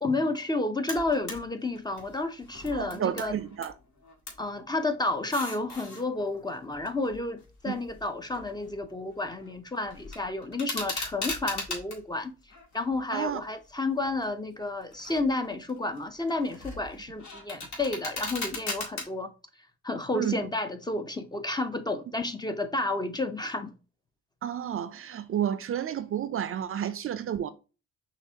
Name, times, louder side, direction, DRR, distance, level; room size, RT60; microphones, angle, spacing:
voice 1, 0.0-3.3 4.4-12.4 12.7-19.3 19.8-23.7, left 2 dB, 15° left, 0.5 m, -31 dB
sound 1, 0.9-1.4 1.8-3.7 4.0-4.5 5.1-6.0 6.7-8.8 9.1-9.5 9.8-12.0 12.5-13.4 14.0-14.2 14.8-15.3 15.7-19.0, left 3 dB, 70° left, 1.9 m, -38 dB
voice 2, 2.7-3.7 7.7-7.8 13.1-13.4 20.1-20.5 24.4-27.5, right 9 dB, 45° right, 0.4 m, -31 dB
5.7 x 2.5 x 2.7 m
cardioid pair, 90°, 30 cm